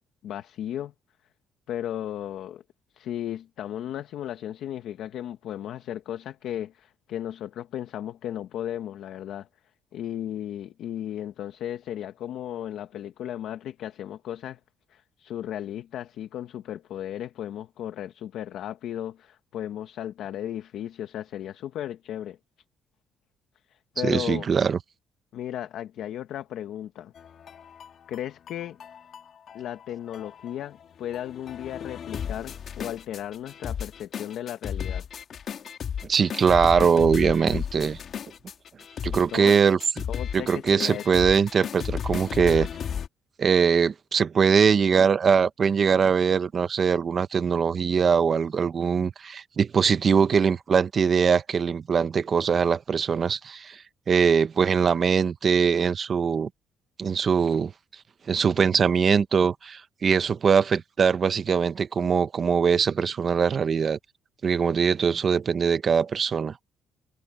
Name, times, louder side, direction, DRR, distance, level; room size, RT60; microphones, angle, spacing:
voice 1, 0.2-0.9 1.7-2.6 2.9-9.5 9.9-14.6 14.9-22.4 23.7-24.5 25.3-27.1 28.1-28.8 29.5-35.1 39.3-39.5 40.1-41.2, left 11 dB, 70° left, 1.1 m, -35 dB
voice 2, 24.0-24.8 36.1-38.0 39.0-39.8 40.3-42.7 43.4-56.5 57.0-57.7 58.3-64.0 64.4-66.6, right 6 dB, 35° right, 0.7 m, -22 dB
sound 1, 27.2-43.1, left 8 dB, 45° left, 2.3 m, -34 dB
cardioid pair, 145°, 0 cm